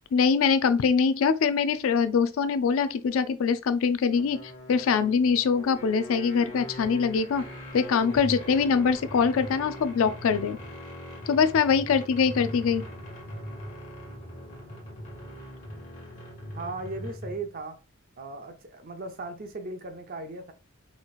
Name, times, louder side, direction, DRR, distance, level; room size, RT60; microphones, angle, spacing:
voice 1, 0.1-7.4 7.7-10.6 11.3-12.8, left 6 dB, 75° left, 0.4 m, -23 dB
sound 1, 4.1-17.5, equal, 35° left, 1.5 m, -40 dB
voice 2, 16.5-17.8 18.2-20.5, right 3 dB, 45° right, 0.6 m, -37 dB
4.1 x 3.0 x 2.4 m
head